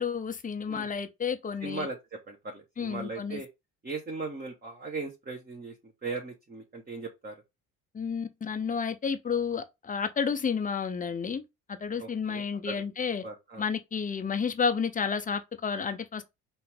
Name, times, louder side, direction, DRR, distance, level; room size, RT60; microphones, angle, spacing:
voice 1, 0.0-1.9 2.8-3.4 7.9-13.2 13.6-16.2, left 6 dB, 20° left, 0.7 m, -31 dB
voice 2, 1.6-3.5 3.8-5.7 6.0-7.4 12.0-12.8 13.2-13.6, right 3 dB, 20° right, 1.2 m, -38 dB
5.7 x 2.6 x 3.4 m
figure-of-eight pair, 50°, 42 cm